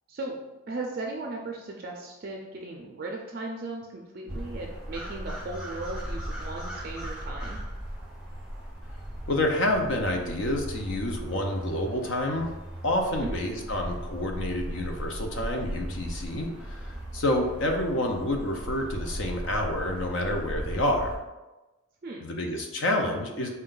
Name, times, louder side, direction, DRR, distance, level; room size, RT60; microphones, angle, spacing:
voice 1, 0.6-7.6 13.2-13.4 22.0-22.3, right 2 dB, 45° right, 0 dB, 0.4 m, -37 dB
sound 1, 4.3-21.2, right 1 dB, 5° right, 0.6 m, -37 dB
voice 2, 9.3-12.5 12.8-21.2 22.2-23.5, left 1 dB, 65° left, 2 dB, 0.6 m, -28 dB
4.3 x 2.2 x 3.8 m, 1.1 s
head